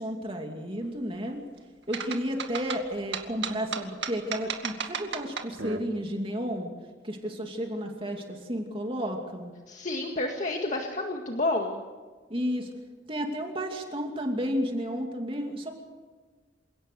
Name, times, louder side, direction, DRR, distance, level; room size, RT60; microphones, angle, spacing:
voice 1, 0.0-1.4 1.9-6.7 7.0-9.5 12.3-12.7 13.1-15.7, equal, 30° right, 2 dB, 2.6 m, -32 dB
sound 1, 1.9-5.8, right 6 dB, 70° right, 2.2 m, -34 dB
voice 2, 9.7-11.8, left 2 dB, 40° left, 2 dB, 1.9 m, -30 dB
28.0 x 17.5 x 6.9 m, 1.4 s
head